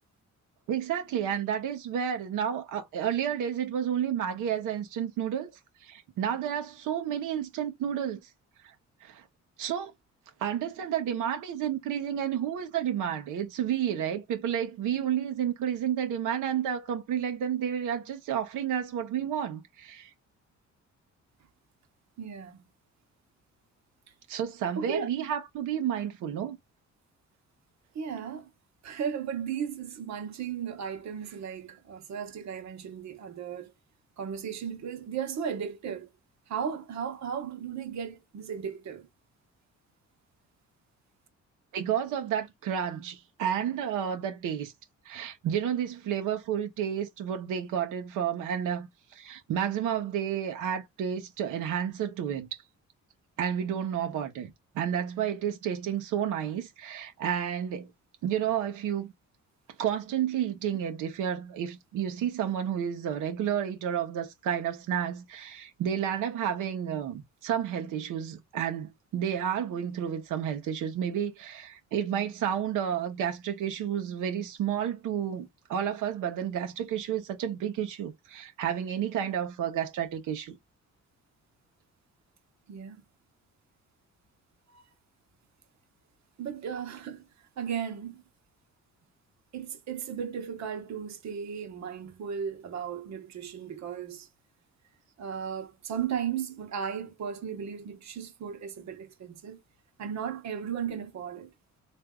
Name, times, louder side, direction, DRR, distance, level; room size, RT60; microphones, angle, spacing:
voice 1, 0.7-5.5 5.8-8.2 9.0-9.2 9.6-9.9 10.4-20.1 24.3-26.6 41.7-44.7 45.0-48.9 49.1-52.6 53.4-57.9 58.2-59.1 59.8-80.6, right 9 dB, 85° right, 1.0 m, -31 dB
voice 2, 22.2-22.6 24.8-25.1 27.9-28.5 28.8-33.7 34.2-36.1 36.5-39.1 82.7-83.0 84.7-84.8 86.4-87.2 87.6-88.2 89.5-94.3 95.2-99.6 100.0-101.5, right 7 dB, 65° right, 1.1 m, -35 dB
3.4 x 2.7 x 3.6 m
cardioid pair, 90°, 30 cm